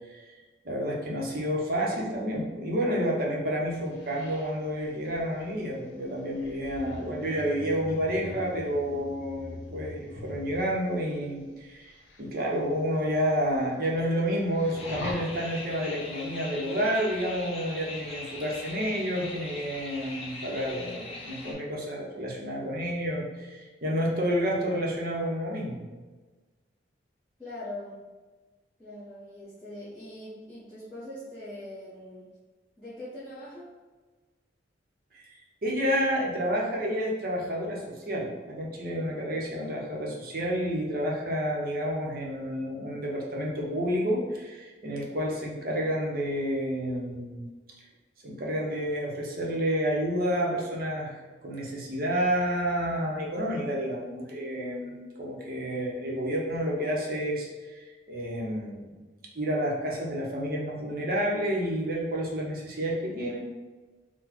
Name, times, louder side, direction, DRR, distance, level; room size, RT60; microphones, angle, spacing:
voice 1, 0.6-25.9 35.1-35.3 35.6-47.5 48.2-58.9 59.3-63.4, equal, 50° right, -2 dB, 0.8 m, -30 dB
sound 1, 3.9-10.8 11.9-12.2 12.6-12.7 13.2-13.3 13.5-14.2 14.5-15.1, left 1 dB, 65° left, 0.7 m, -42 dB
sound 2, 14.7-21.5, left 2 dB, 30° left, 0.7 m, -41 dB
voice 2, 27.4-27.9 28.8-32.3 32.8-33.7, left 1 dB, 5° right, -13 dB, 1.1 m, -42 dB
4.1 x 2.2 x 4.4 m, 1.3 s
head